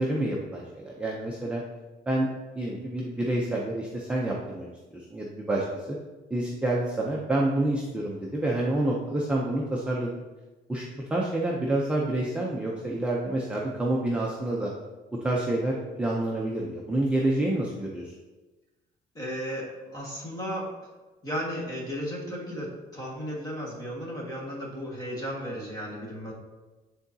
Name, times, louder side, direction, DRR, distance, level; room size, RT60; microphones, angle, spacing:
voice 1, 0.0-1.6 2.1-2.3 2.6-6.0 6.3-10.1 10.7-14.7 15.1-18.1, right 1 dB, 5° right, -4 dB, 0.5 m, -28 dB
voice 2, 19.1-20.8 21.2-26.3, equal, 20° left, -3 dB, 1.5 m, -34 dB
9.5 x 3.9 x 2.7 m, 1.2 s
cardioid pair, 165°, 17 cm